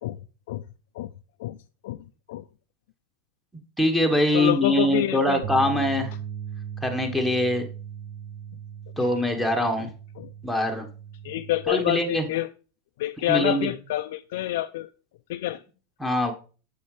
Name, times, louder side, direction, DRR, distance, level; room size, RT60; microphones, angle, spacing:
voice 1, 3.8-6.1 6.8-7.7 9.0-9.9 10.4-10.9 11.7-12.2 13.3-13.7 16.0-16.3, left 1 dB, ahead, 1.2 m, -23 dB
voice 2, 4.3-5.4 9.0-9.1 9.8-9.9 10.2-10.3 11.2-12.5 13.0-14.9 15.3-15.6, left 15 dB, 70° left, 0.3 m, -27 dB
sound 1, 5.4-11.7, right 8 dB, 50° right, 1.1 m, -38 dB
7.3 x 6.8 x 3.2 m
hypercardioid pair, 120°, 0 cm